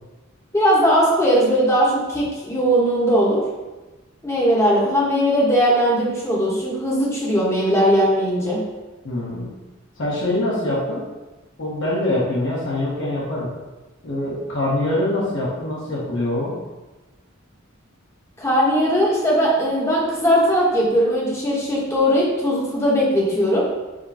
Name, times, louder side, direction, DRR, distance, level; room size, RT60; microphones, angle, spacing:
voice 1, 0.5-3.4 4.2-8.6 18.4-23.6, equal, 15° left, -5 dB, 1.0 m, -19 dB
voice 2, 9.0-9.5 10.0-11.1 11.6-13.5 14.0-16.5, left 1 dB, 60° left, -6 dB, 1.1 m, -24 dB
5.1 x 2.2 x 4.1 m, 1.1 s
head